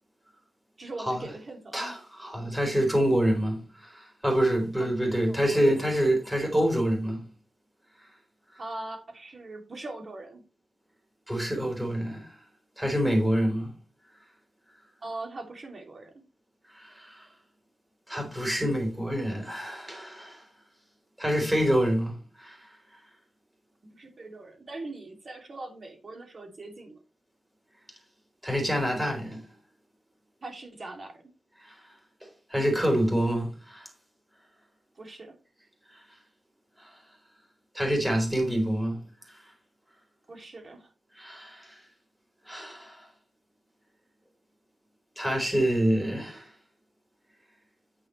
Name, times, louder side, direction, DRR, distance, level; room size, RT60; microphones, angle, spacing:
voice 1, 0.8-1.9 4.8-5.8 8.6-10.4 15.0-16.2 23.8-27.0 30.4-31.2 35.0-35.3 40.3-40.9, right 2 dB, 40° right, 2.9 m, -41 dB
voice 2, 1.7-7.2 11.3-12.3 12.8-13.7 16.7-17.3 18.1-20.4 21.2-22.7 28.4-29.4 31.6-31.8 32.2-33.9 36.8-36.9 37.7-39.0 39.3-39.4 41.2-41.8 42.5-43.1 45.2-46.5, equal, 10° right, 4.0 m, -27 dB
9.5 x 8.5 x 3.3 m
wide cardioid pair, 135°, 0 cm